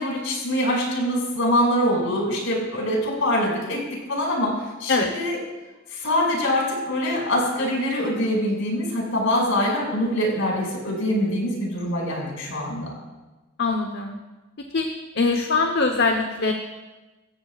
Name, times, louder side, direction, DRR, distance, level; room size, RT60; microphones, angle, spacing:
voice 1, 0.0-3.8 4.1-5.4 5.9-12.9, left 1 dB, 70° left, -2 dB, 6.3 m, -24 dB
voice 2, 13.6-14.2 14.7-14.9 15.2-16.5, left 3 dB, 55° left, 3 dB, 1.0 m, -22 dB
24.0 x 15.0 x 2.5 m, 1.2 s
head